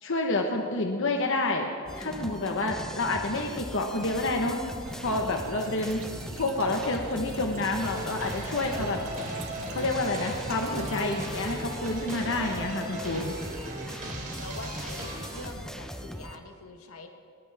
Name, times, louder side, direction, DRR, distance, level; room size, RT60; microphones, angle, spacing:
voice 1, 0.0-1.7 1.9-4.7 5.0-6.0 6.4-9.0 9.7-13.4, left 2 dB, 60° left, 2 dB, 1.2 m, -29 dB
sound 1, 1.8-16.4, equal, 5° left, 0.7 m, -40 dB
sound 2, 4.8-11.6, right 2 dB, 75° right, 1.3 m, -44 dB
sound 3, 7.7-15.5, right 1 dB, 40° right, 3.0 m, -37 dB
voice 2, 14.0-17.1, left 2 dB, 80° left, 4 dB, 1.5 m, -44 dB
20.5 x 20.0 x 3.5 m, 2.1 s
head